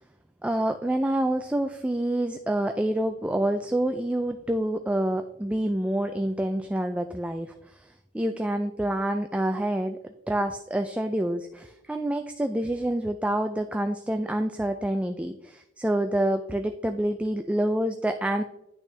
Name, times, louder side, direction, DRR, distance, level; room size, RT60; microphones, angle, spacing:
voice 1, 0.4-18.4, right 1 dB, 5° right, 6 dB, 0.3 m, -27 dB
10.5 x 6.2 x 3.3 m, 0.88 s
head